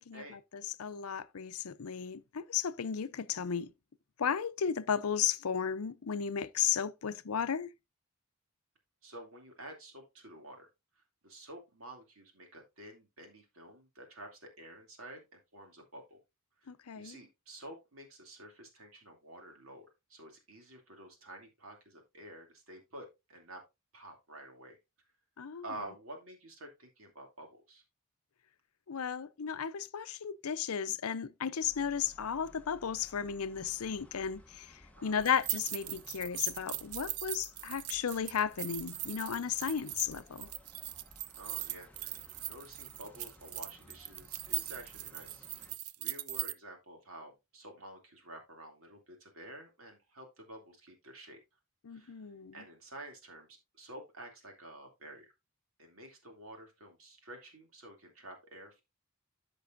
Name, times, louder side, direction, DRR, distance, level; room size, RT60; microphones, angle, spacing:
voice 1, 0.0-3.7 4.2-7.7 16.7-17.2 25.4-25.6 28.9-40.5 51.8-52.6, left 7 dB, 80° left, 0.6 m, -34 dB
voice 2, 9.0-10.7 11.0-16.2 16.6-23.6 23.9-24.8 25.6-27.8 34.9-35.3 41.4-45.7 46.0-51.4 51.9-52.2 52.5-55.3 55.8-58.8, right 1 dB, 65° right, 2.6 m, -50 dB
sound 1, 31.6-45.8, left 1 dB, 5° left, 0.8 m, -58 dB
sound 2, 35.2-46.5, right 15 dB, 85° right, 0.5 m, -40 dB
13.5 x 5.3 x 2.5 m
head